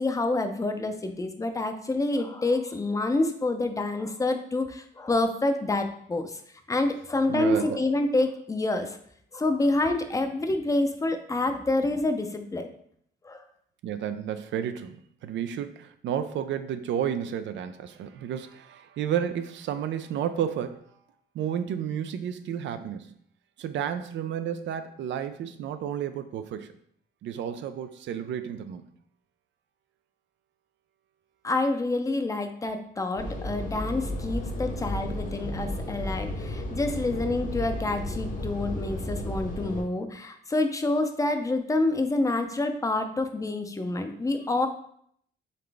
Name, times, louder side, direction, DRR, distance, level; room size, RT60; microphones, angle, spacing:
voice 1, 0.0-6.4 6.7-9.0 9.3-12.7 13.2-13.4 31.4-44.7, left 2 dB, 15° left, 6 dB, 0.5 m, -27 dB
voice 2, 7.3-7.8 13.8-15.0 15.2-20.8 21.3-23.1 23.6-26.7 27.2-28.9, right 9 dB, 70° right, 10 dB, 0.4 m, -31 dB
sound 1, 33.2-39.8, left 1 dB, 40° left, 0.8 m, -33 dB
4.0 x 3.2 x 3.3 m, 0.65 s
cardioid pair, 90°, 20 cm